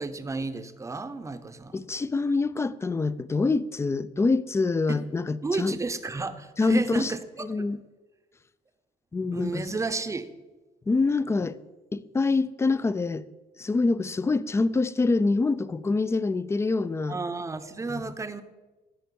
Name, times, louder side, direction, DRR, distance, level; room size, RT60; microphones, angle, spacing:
voice 1, 0.0-1.8 4.9-5.0 5.4-7.7 9.3-10.3 17.1-18.4, right 3 dB, 20° right, 0.8 m, -32 dB
voice 2, 1.7-5.8 6.6-7.1 7.4-7.8 9.1-9.7 10.9-11.6 11.9-13.2 13.6-17.2 17.9-18.1, left 3 dB, 15° left, 0.4 m, -25 dB
12.5 x 5.2 x 7.0 m
cardioid pair, 110°, 17 cm